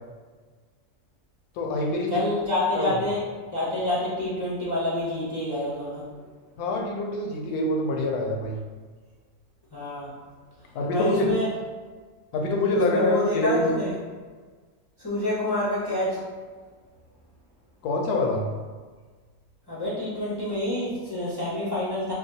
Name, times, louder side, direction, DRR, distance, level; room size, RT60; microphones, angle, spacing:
voice 1, 1.6-2.2 2.7-3.0 6.6-8.6 10.7-11.3 12.3-13.8 17.8-18.5, left 2 dB, 80° left, 1 dB, 1.1 m, -25 dB
voice 2, 2.1-3.2 3.5-6.0 9.7-10.1 10.9-11.5 12.7-13.9 15.0-16.2 19.7-22.1, left 1 dB, 30° left, -9 dB, 0.5 m, -27 dB
5.1 x 2.2 x 2.7 m, 1.4 s
omnidirectional pair, 1.6 m